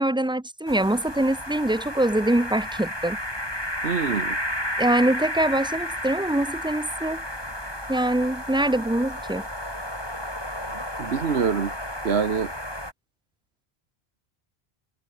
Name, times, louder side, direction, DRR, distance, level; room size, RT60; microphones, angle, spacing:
voice 1, 0.0-3.2 4.8-7.2 7.9-9.5, right 1 dB, 5° right, 0.6 m, -24 dB
sound 1, 0.7-12.9, left 1 dB, 25° left, 6.7 m, -32 dB
voice 2, 3.8-4.4 10.7-11.7 12.0-12.5, right 6 dB, 75° right, 1.6 m, -25 dB
omnidirectional pair, 1.1 m